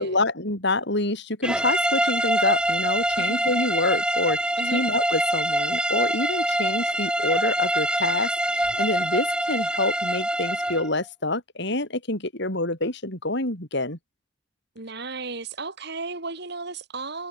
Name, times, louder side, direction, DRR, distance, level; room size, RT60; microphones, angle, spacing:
voice 1, 0.0-4.4 4.7-14.0, left 2 dB, 60° left, 7.2 m, -27 dB
sound 1, 1.4-10.9, right 1 dB, 5° right, 2.2 m, -25 dB
voice 2, 14.7-17.3, right 3 dB, 60° right, 5.0 m, -34 dB
head